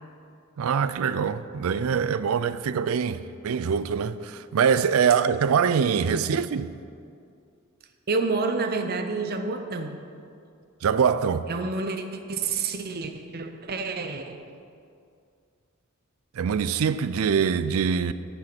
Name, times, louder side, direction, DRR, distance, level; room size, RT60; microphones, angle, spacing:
voice 1, 0.6-6.7 10.8-11.5 16.4-18.1, right 6 dB, 85° right, 0.4 m, -24 dB
voice 2, 6.1-6.4 8.1-10.0 11.5-14.4, right 3 dB, 50° right, 0.7 m, -29 dB
8.4 x 7.8 x 6.0 m
head